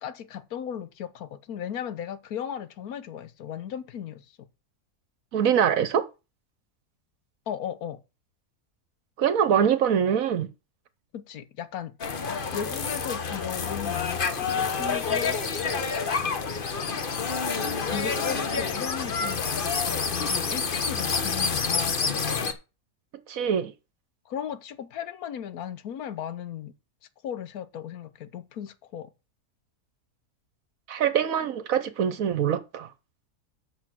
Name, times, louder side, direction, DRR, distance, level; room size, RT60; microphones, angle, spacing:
voice 1, 0.0-4.5 7.5-8.0 11.1-11.9 12.5-15.4 16.2-16.3 17.9-22.5 24.3-26.7 27.2-29.1, left 9 dB, 70° left, 1.2 m, -36 dB
voice 2, 5.3-6.0 9.2-10.5 23.3-23.7 30.9-32.9, right 8 dB, 65° right, 1.2 m, -24 dB
sound 1, 12.0-22.5, left 5 dB, 40° left, 1.0 m, -28 dB
8.0 x 6.3 x 6.1 m
omnidirectional pair, 1.7 m